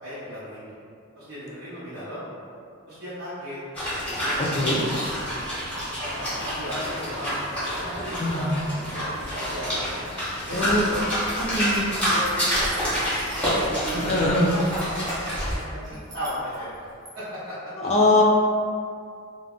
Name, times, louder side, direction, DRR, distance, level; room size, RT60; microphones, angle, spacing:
voice 1, 0.0-0.7 1.2-2.3 2.9-3.6 4.1-4.8 6.0-7.4 7.7-9.7 10.5-11.0 11.4-11.7 12.0-13.0 13.4-17.7, equal, 55° right, -12 dB, 0.7 m, -36 dB
sound 1, 3.7-15.6, equal, 5° left, 0.9 m, -28 dB
voice 2, 4.4-4.8 8.2-8.6 10.5-10.8 11.4-11.9 13.9-14.5 17.8-18.2, left 2 dB, 30° left, -3 dB, 0.4 m, -22 dB
sound 2, 12.2-14.0 14.2-15.2 15.6-17.1, right 1 dB, 15° right, 0.6 m, -46 dB
2.4 x 2.1 x 3.6 m, 2.4 s
head